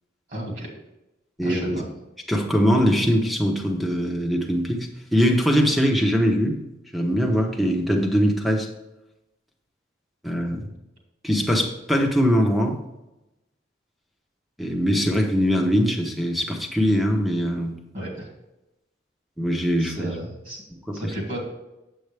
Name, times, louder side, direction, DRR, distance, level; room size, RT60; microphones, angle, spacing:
voice 1, 0.3-0.7 1.4-1.8 17.9-18.3 19.8-20.6 20.9-21.5, right 1 dB, 45° right, -1 dB, 2.7 m, -33 dB
voice 2, 1.4-1.9 2.3-6.6 6.9-8.7 10.2-10.7 11.2-12.8 14.6-17.7 19.4-20.2 20.9-21.1, equal, ahead, 3 dB, 1.0 m, -22 dB
7.9 x 7.9 x 3.4 m, 0.95 s
head